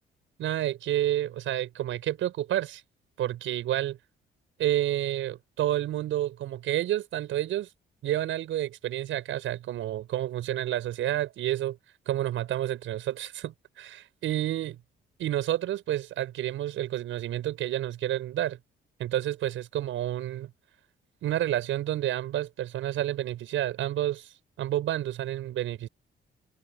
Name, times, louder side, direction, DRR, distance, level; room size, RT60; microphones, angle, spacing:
voice 1, 0.4-2.8 3.2-4.0 4.6-7.7 8.0-11.8 12.1-14.8 15.2-18.6 19.0-20.5 21.2-24.3 24.6-25.9, right 13 dB, 80° right, 7.2 m, -29 dB
cardioid pair, 90°, 20 cm